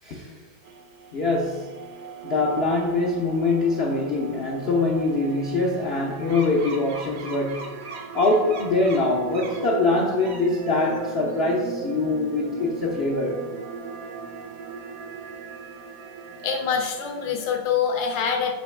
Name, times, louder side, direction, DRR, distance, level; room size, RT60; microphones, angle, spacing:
voice 1, 0.0-0.5 1.1-1.8 2.2-7.7 8.1-13.5, left 2 dB, 60° left, 0.6 m, -23 dB
sound 1, 0.7-17.6, right 5 dB, 70° right, 1.1 m, -38 dB
sound 2, 6.3-9.7 10.1-11.3, right 3 dB, 55° right, 0.8 m, -40 dB
voice 2, 16.4-18.5, left 6 dB, 75° left, 1.6 m, -25 dB
6.6 x 3.0 x 5.9 m
omnidirectional pair, 2.1 m